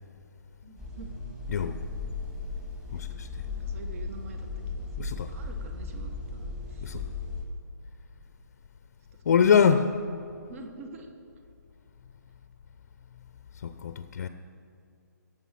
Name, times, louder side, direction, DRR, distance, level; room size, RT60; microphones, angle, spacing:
voice 1, 0.6-1.1 2.9-3.1 3.5-7.1 9.1-9.4 10.5-11.1, right 3 dB, 45° right, 5 dB, 1.3 m, -47 dB
sound 1, 0.8-7.4, left 3 dB, 5° right, 1.7 m, -36 dB
voice 2, 1.5-1.9 2.9-3.5 5.0-5.3 6.8-7.1 9.2-9.9 13.5-14.3, left 7 dB, 50° left, 10 dB, 0.5 m, -24 dB
16.0 x 7.8 x 5.8 m, 2.5 s
hypercardioid pair, 155°, 10 cm